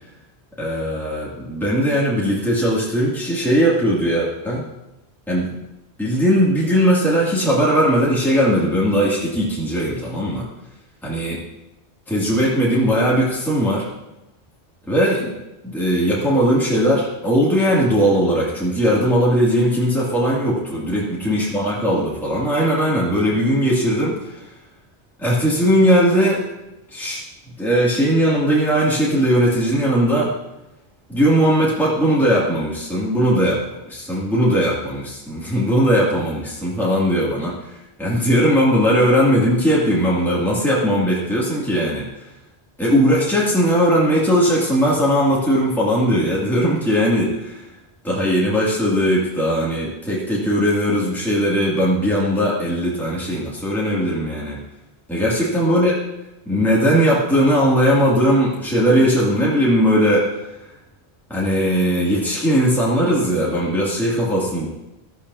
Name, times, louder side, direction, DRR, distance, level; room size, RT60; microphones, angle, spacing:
voice 1, 0.6-4.6 5.3-5.5 6.0-10.5 11.0-11.4 12.1-13.9 14.9-15.3 15.6-24.4 25.2-26.4 26.9-27.2 27.6-30.3 31.1-33.6 33.9-42.1 42.8-47.6 48.0-54.6 55.1-55.9 56.5-60.3 61.3-64.7, equal, ahead, -7 dB, 2.5 m, -19 dB
17.5 x 12.0 x 2.8 m, 0.94 s
omnidirectional pair, 1.1 m